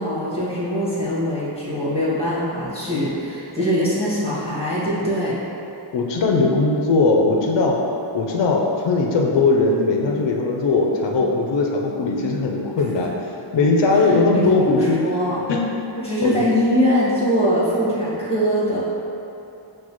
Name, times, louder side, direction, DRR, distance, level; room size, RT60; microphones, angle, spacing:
voice 1, 0.0-5.3 14.0-15.4 16.0-18.8, equal, 10° left, -9 dB, 1.4 m, -22 dB
voice 2, 5.9-7.8 8.1-13.1 13.5-15.0 15.5-15.6 16.2-16.4, left 3 dB, 65° left, 0 dB, 0.6 m, -19 dB
6.1 x 2.3 x 3.0 m, 2.8 s
wide cardioid pair, 50°, 47 cm